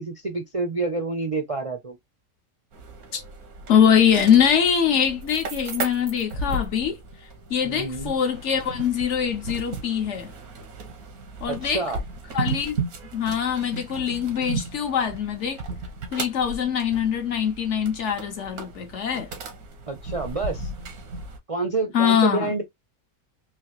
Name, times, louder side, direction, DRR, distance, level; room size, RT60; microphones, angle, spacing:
voice 1, 0.0-2.0 7.6-8.1 11.5-12.0 19.9-20.7 21.5-22.6, right 3 dB, 45° right, 0.4 m, -28 dB
sound 1, 2.7-21.4, right 3 dB, 90° right, 1.4 m, -35 dB
voice 2, 3.7-7.0 7.5-10.3 11.4-11.8 12.3-12.8 13.1-15.6 16.1-19.3 21.9-22.5, left 8 dB, 60° left, 1.0 m, -23 dB
3.8 x 2.8 x 3.0 m
omnidirectional pair, 1.5 m